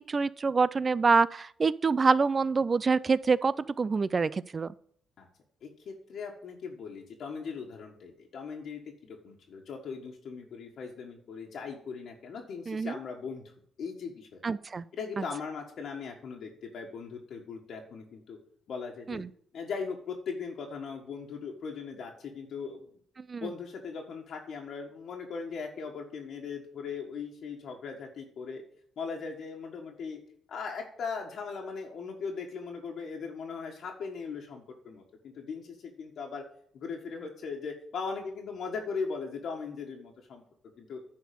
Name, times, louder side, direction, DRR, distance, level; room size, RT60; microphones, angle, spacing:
voice 1, 0.1-4.7 12.7-12.9 14.4-14.8 19.1-19.3 23.2-23.5, right 4 dB, 35° right, 19 dB, 0.4 m, -26 dB
voice 2, 5.6-13.4 13.8-14.6 14.9-18.4 18.7-19.2 19.5-22.9 23.4-28.6 29.0-30.2 30.5-36.4 36.7-40.4 40.8-41.0, left 5 dB, 65° left, 0 dB, 1.6 m, -39 dB
10.5 x 4.3 x 6.9 m, 0.64 s
cardioid pair, 90°, 0 cm